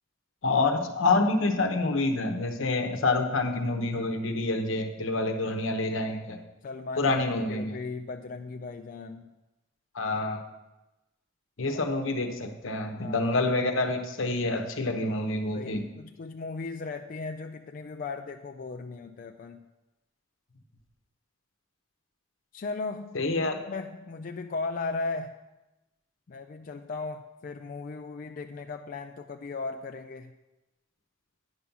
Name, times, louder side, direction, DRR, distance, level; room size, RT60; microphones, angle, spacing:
voice 1, 0.4-6.4 7.0-7.8 9.9-10.4 11.6-15.8 23.1-23.6, left 2 dB, 80° left, 5 dB, 0.9 m, -27 dB
voice 2, 6.6-7.1 7.5-9.3 11.7-11.8 13.0-13.3 15.5-19.7 22.5-23.2 23.5-25.4 26.3-30.3, left 3 dB, 45° left, 5 dB, 0.3 m, -37 dB
9.7 x 5.5 x 5.8 m, 1.0 s
head